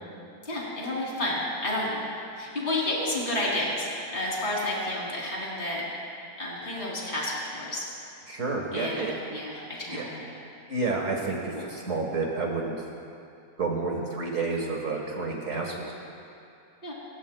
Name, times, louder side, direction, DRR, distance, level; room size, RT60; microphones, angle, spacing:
voice 1, 0.4-2.0 2.4-5.8 6.4-7.8 8.7-10.3 11.5-11.7 16.8-16.9, left 1 dB, 35° left, -4 dB, 3.2 m, -31 dB
voice 2, 8.3-9.1 9.9-10.0 10.7-12.8 13.6-15.9, right 3 dB, 60° right, -1 dB, 1.8 m, -30 dB
27.5 x 15.5 x 2.2 m, 2.6 s
omnidirectional pair, 1.6 m